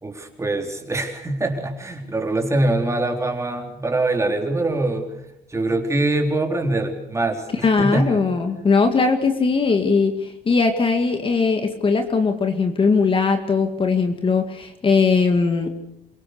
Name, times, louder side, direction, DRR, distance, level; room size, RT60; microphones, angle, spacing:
voice 1, 0.0-5.1 5.5-8.2, right 2 dB, 15° right, 3 dB, 4.0 m, -23 dB
voice 2, 7.6-15.7, left 4 dB, 30° left, 6 dB, 2.2 m, -19 dB
28.0 x 18.0 x 6.8 m, 0.83 s
cardioid pair, 110°, 17 cm